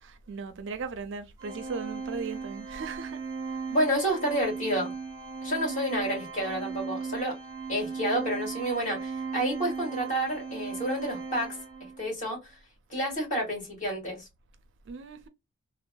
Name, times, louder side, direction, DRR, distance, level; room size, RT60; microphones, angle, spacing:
voice 1, 0.0-3.6 14.9-15.3, right 5 dB, 55° right, 0.4 m, -38 dB
Organ, 1.4-12.1, right 5 dB, 15° right, 0.9 m, -37 dB
voice 2, 3.7-4.9 5.4-7.3 7.7-11.5 12.0-12.5 12.9-14.3, equal, 35° left, 1.8 m, -29 dB
3.6 x 2.0 x 2.2 m
head